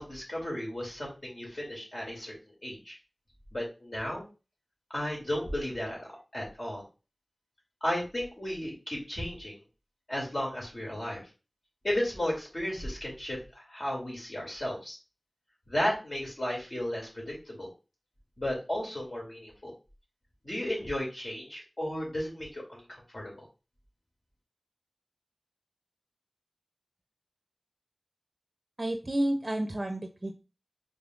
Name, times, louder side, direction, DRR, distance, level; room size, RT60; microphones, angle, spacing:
voice 1, 0.0-2.3 2.6-3.0 3.5-4.3 4.9-6.1 6.3-6.8 7.8-9.6 10.1-11.2 11.8-15.0 15.7-17.7 18.4-19.7 20.4-23.5, left 1 dB, 50° left, -2 dB, 2.5 m, -34 dB
voice 2, 28.8-30.3, right 1 dB, 40° right, 5 dB, 0.5 m, -30 dB
5.0 x 3.7 x 2.4 m, 0.31 s
wide cardioid pair, 45°, 0 cm